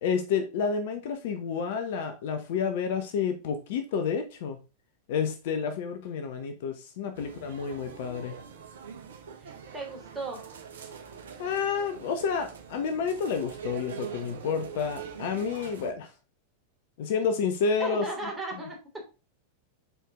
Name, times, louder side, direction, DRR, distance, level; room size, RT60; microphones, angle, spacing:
voice 1, 0.0-4.6 5.1-8.4 11.4-16.1 17.0-18.0, left 6 dB, 50° left, 0.9 m, -30 dB
sound 1, 7.1-15.9, right 6 dB, 65° right, 1.1 m, -43 dB
voice 2, 9.4-10.4 17.8-18.8, right 2 dB, 10° right, 2.9 m, -36 dB
6.8 x 4.6 x 3.7 m
figure-of-eight pair, 90°, 0 cm